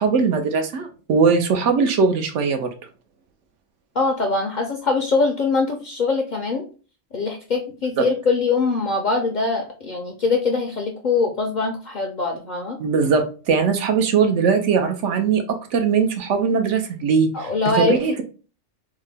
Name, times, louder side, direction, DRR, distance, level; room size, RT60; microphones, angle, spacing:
voice 1, 0.0-2.7 12.8-17.3 17.7-18.1, right 5 dB, 75° right, 6 dB, 1.0 m, -20 dB
voice 2, 3.9-6.7 7.1-12.8 17.3-18.0, left 3 dB, 55° left, 2 dB, 0.5 m, -22 dB
3.6 x 2.1 x 3.3 m, 0.36 s
omnidirectional pair, 1.3 m